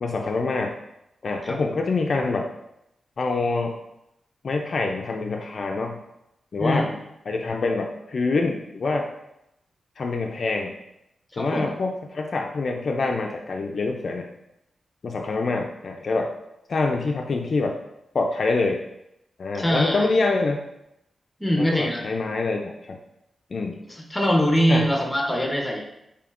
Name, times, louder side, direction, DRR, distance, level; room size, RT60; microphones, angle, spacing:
voice 1, 0.0-0.8 1.2-2.5 3.2-3.8 4.4-6.0 6.5-6.9 7.3-9.1 10.0-10.8 11.4-14.3 15.0-16.3 16.7-17.8 18.1-18.8 19.4-20.6 21.6-23.0 23.5-23.8 24.7-24.9, left 3 dB, 55° left, 3 dB, 0.3 m, -25 dB
voice 2, 6.6-7.0 11.3-11.7 19.6-20.1 21.4-22.0 23.9-25.8, equal, 10° left, 1 dB, 0.7 m, -23 dB
5.1 x 2.6 x 2.4 m, 0.83 s
cardioid pair, 90°, 0 cm